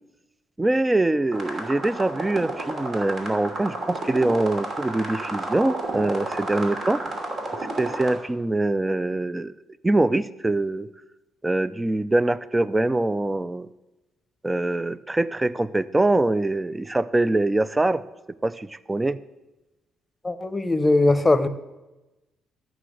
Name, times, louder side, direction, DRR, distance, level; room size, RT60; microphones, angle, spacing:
voice 1, 0.6-7.0 7.8-9.6 9.8-10.9 11.4-13.7 14.4-18.0 18.4-19.2, right 2 dB, 15° right, 16 dB, 0.4 m, -23 dB
sound 1, 1.3-8.1, right 2 dB, 60° right, 2.9 m, -31 dB
voice 2, 20.2-21.5, left 2 dB, 20° left, 12 dB, 0.8 m, -20 dB
13.0 x 5.9 x 7.5 m, 1.0 s
cardioid pair, 90°, 0 cm